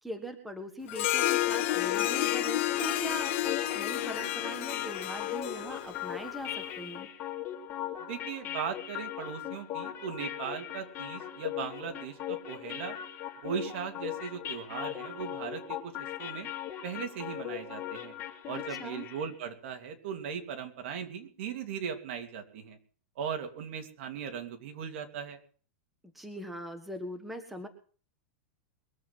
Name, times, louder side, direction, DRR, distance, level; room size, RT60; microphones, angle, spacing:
voice 1, 0.0-7.1 18.5-19.1 26.1-27.7, equal, ahead, 5 dB, 1.5 m, -41 dB
Harp, 0.9-6.6, left 14 dB, 55° left, 1.6 m, -31 dB
sound 1, 1.4-19.3, left 12 dB, 30° left, 2.6 m, -39 dB
voice 2, 8.1-13.0 13.4-16.5 16.8-18.1 18.5-22.8 23.2-25.4, right 7 dB, 60° right, 5 dB, 2.8 m, -38 dB
22.5 x 7.9 x 5.8 m, 0.42 s
supercardioid pair, 160°, 7 cm